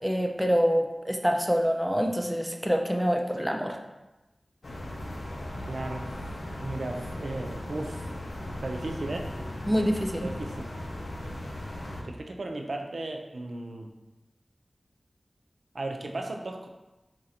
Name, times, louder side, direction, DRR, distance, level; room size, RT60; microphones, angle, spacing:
voice 1, 0.0-3.8 9.7-10.3, equal, ahead, 2 dB, 0.4 m, -26 dB
sound 1, 4.6-12.0, left 1 dB, 65° left, 0.6 m, -37 dB
voice 2, 5.6-6.1 6.6-8.1 8.5-9.3 10.2-10.7 12.0-13.9 15.7-16.7, right 2 dB, 75° right, 3 dB, 0.4 m, -35 dB
4.1 x 2.5 x 4.2 m, 1.0 s
wide cardioid pair, 70°, 0 cm